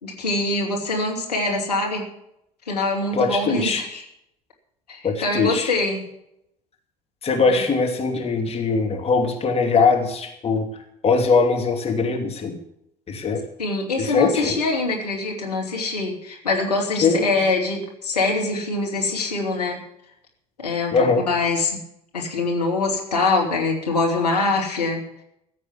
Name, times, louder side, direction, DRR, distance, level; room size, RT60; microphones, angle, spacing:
voice 1, 0.0-2.0 2.7-4.0 4.9-6.0 7.5-7.6 13.6-19.8 20.6-21.8 22.1-25.0, left 3 dB, 80° left, -1 dB, 2.9 m, -24 dB
voice 2, 3.1-3.8 5.0-5.7 7.2-10.7 11.0-12.6 13.1-13.4 14.0-14.6 17.0-17.3 20.9-21.2, left 4 dB, 30° left, 3 dB, 2.8 m, -21 dB
15.0 x 8.2 x 8.3 m, 0.78 s
figure-of-eight pair, 60°, 20 cm